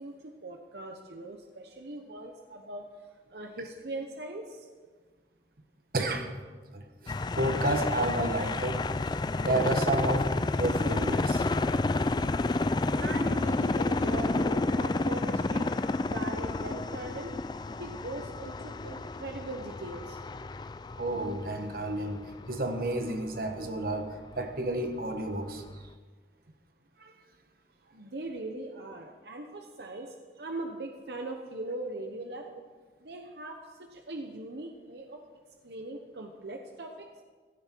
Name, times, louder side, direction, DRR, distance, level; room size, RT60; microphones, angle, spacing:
voice 1, 0.0-4.7 13.0-15.7 16.0-17.4 17.8-20.2 27.9-32.5 33.0-35.2 35.6-37.1, right 2 dB, 70° right, 3 dB, 1.0 m, -40 dB
voice 2, 5.9-6.3 6.7-8.8 9.4-11.4 21.0-22.2 22.5-25.6 27.0-27.1, right 1 dB, 55° right, 5 dB, 1.3 m, -31 dB
sound 1, 7.1-23.2 23.6-23.7 24.7-24.8 25.7-25.8, left 2 dB, 25° left, 0.3 m, -30 dB
16.0 x 13.0 x 4.6 m, 1.5 s
head